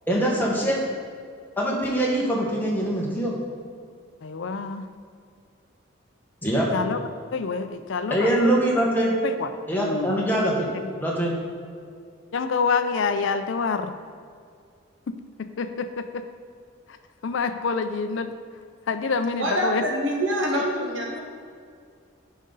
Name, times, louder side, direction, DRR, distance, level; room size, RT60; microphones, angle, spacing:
voice 1, 0.1-0.8 1.6-3.3 6.4-6.7 8.1-9.2 9.7-10.7 11.0-11.3, right 1 dB, 10° left, -4 dB, 1.3 m, -23 dB
voice 2, 4.2-4.9 6.7-7.0 7.3-8.5 9.2-9.5 9.8-10.2 12.3-13.9 15.1-16.2 17.2-18.3 18.9-19.8, left 5 dB, 65° left, 9 dB, 0.4 m, -27 dB
voice 3, 19.4-21.2, equal, 60° right, -1 dB, 1.4 m, -25 dB
10.5 x 5.1 x 3.9 m, 2.2 s
head